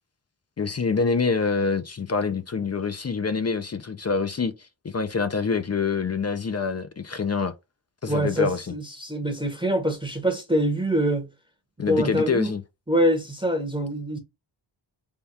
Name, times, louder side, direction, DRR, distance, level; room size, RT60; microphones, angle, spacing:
voice 1, 0.6-7.5 8.0-8.7 11.8-12.6, left 5 dB, 35° left, 0.4 m, -26 dB
voice 2, 8.1-11.3 11.8-12.5 12.9-14.2, right 1 dB, 10° right, 0.8 m, -24 dB
3.5 x 2.3 x 4.0 m
wide cardioid pair, 100°, 46 cm